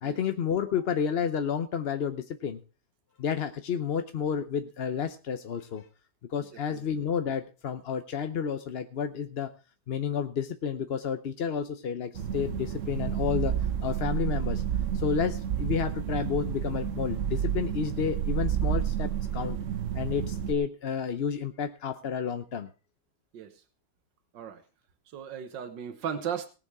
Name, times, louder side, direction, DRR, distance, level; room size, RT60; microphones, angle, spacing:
voice 1, 0.0-2.6 3.2-5.8 6.3-9.5 9.9-13.5 13.8-14.6 14.9-19.6 19.9-22.7, left 7 dB, 50° left, 8 dB, 0.7 m, -31 dB
voice 2, 6.7-7.0 23.3-23.6 24.3-24.6 25.1-26.5, right 8 dB, 85° right, 9 dB, 1.8 m, -36 dB
sound 1, 12.1-20.5, right 9 dB, 55° right, 1.0 m, -30 dB
19.0 x 7.1 x 4.7 m, 0.34 s
omnidirectional pair, 1.9 m